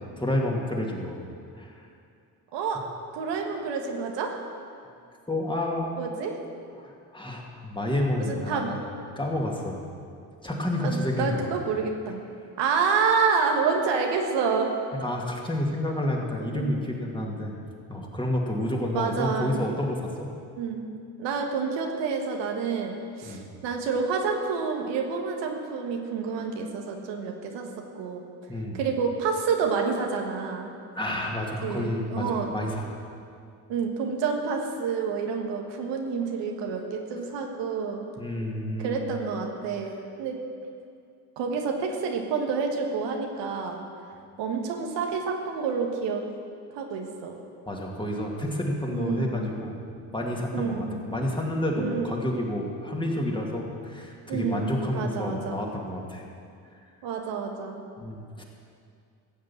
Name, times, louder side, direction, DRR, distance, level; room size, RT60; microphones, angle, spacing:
voice 1, 0.2-1.2 1.6-1.7 5.3-6.3 6.8-8.8 9.2-9.9 10.4-11.5 14.9-17.6 17.9-20.3 23.2-23.4 28.5-28.8 30.9-33.0 38.2-39.1 47.7-49.8 50.1-56.2 58.0-58.4, left 1 dB, 10° left, -1 dB, 2.6 m, -29 dB
voice 2, 2.5-2.8 3.1-4.4 6.0-6.4 8.2-8.8 10.8-12.2 12.6-14.7 16.5-16.8 18.9-19.6 20.6-20.8 21.2-27.7 27.9-28.2 28.7-30.7 31.6-32.5 33.7-38.1 38.8-40.4 41.4-43.8 44.4-46.2 46.7-47.3 48.9-49.3 50.5-50.9 51.8-52.1 54.3-55.6 57.0-57.8, right 5 dB, 80° right, 2 dB, 1.6 m, -28 dB
15.0 x 7.6 x 7.3 m, 2.4 s
supercardioid pair, 75°, 43 cm